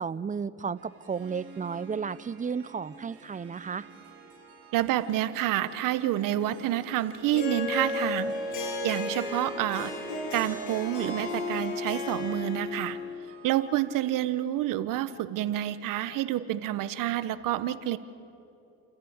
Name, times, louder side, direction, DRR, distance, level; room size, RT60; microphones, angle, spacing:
voice 1, 0.0-3.9, right 6 dB, 25° right, 17 dB, 0.7 m, -33 dB
Harp, 0.8-15.2, right 4 dB, 45° right, 6.6 m, -51 dB
voice 2, 4.7-9.9 10.3-13.0 13.4-18.0, right 13 dB, 80° right, 14 dB, 1.1 m, -28 dB
Harp 2, 7.3-13.1, left 3 dB, 65° left, 8.0 m, -33 dB
30.0 x 14.0 x 8.8 m, 2.8 s
cardioid pair, 95°, 32 cm